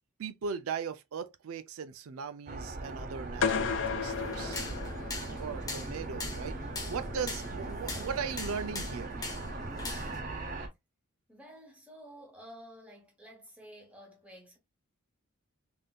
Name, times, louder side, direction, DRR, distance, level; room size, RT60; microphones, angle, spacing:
voice 1, 0.2-4.6 5.4-6.6 6.9-9.3, right 6 dB, 75° right, 0.4 m, -38 dB
sound 1, 2.5-10.7, right 2 dB, 40° right, 0.6 m, -39 dB
sound 2, 3.4-5.5, left 6 dB, 60° left, 0.4 m, -33 dB
sound 3, 4.1-10.2, left 2 dB, 15° left, 0.6 m, -42 dB
voice 2, 5.3-5.7 11.3-14.6, equal, 5° right, 1.0 m, -52 dB
3.5 x 2.6 x 2.3 m
head